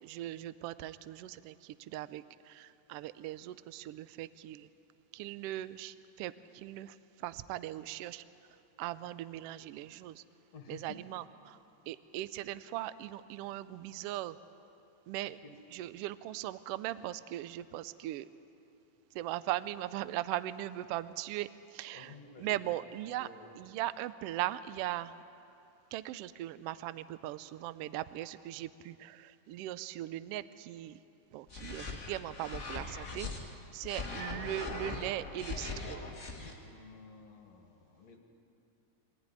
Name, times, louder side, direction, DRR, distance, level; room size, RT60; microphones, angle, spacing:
voice 1, 0.0-4.7 5.1-8.2 8.8-10.2 10.7-11.6 11.9-14.4 15.1-15.4 15.7-18.3 19.1-23.3 23.6-25.1 25.9-31.0 31.3-33.3 33.7-36.0, right 14 dB, 85° right, 15 dB, 1.3 m, -39 dB
voice 2, 10.5-11.0 15.2-15.5 21.9-22.8 23.2-23.6 36.3-38.2, left 4 dB, 65° left, 3 dB, 2.8 m, -52 dB
sound 1, 31.5-33.4 33.8-36.5, left 3 dB, 30° left, 1.9 m, -40 dB
23.0 x 14.0 x 9.6 m, 2.8 s
omnidirectional pair, 3.4 m